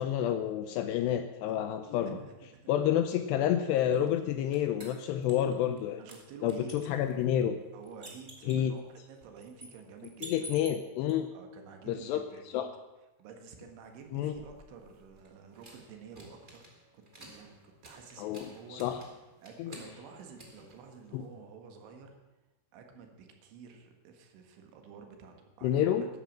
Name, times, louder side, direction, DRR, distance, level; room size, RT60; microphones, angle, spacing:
voice 1, 0.0-2.2 2.7-6.0 6.4-7.6 8.5-8.7 10.2-11.3 11.9-12.2 12.5-12.7 14.1-14.3 18.2-19.0 19.6-19.7 21.1-21.2 25.6-26.0, left 10 dB, 80° left, 9 dB, 2.5 m, -29 dB
voice 2, 2.1-2.7 6.0-6.7 7.7-10.5 11.3-12.6 13.2-18.8 19.4-22.2 22.7-26.1, right 5 dB, 80° right, 4 dB, 4.0 m, -50 dB
sound 1, 3.9-5.8 6.1-11.1 13.9-21.4, right 1 dB, 40° right, 0.6 m, -52 dB
13.0 x 11.0 x 7.4 m, 1.0 s
omnidirectional pair, 5.4 m